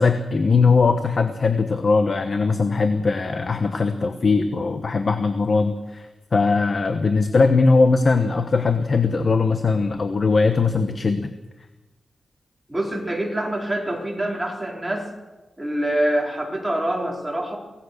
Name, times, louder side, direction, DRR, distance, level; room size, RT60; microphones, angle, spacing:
voice 1, 0.0-11.3, left 4 dB, 40° left, 8 dB, 1.2 m, -20 dB
voice 2, 12.7-15.1 15.6-17.6, right 1 dB, 10° right, -1 dB, 4.1 m, -25 dB
24.0 x 17.5 x 6.7 m, 1.2 s
wide cardioid pair, 150°, 0 cm